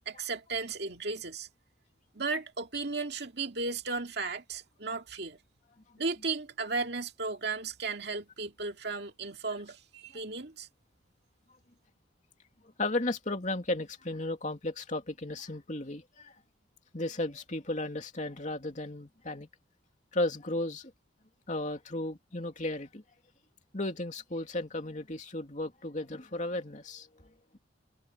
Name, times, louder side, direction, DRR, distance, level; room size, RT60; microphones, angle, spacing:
voice 1, 0.1-1.5 2.1-5.4 6.0-10.7, right 4 dB, 60° right, 2.4 m, -35 dB
voice 2, 12.8-16.3 16.9-19.5 20.1-20.9 21.5-23.0 23.7-27.6, left 2 dB, 40° left, 2.9 m, -34 dB
head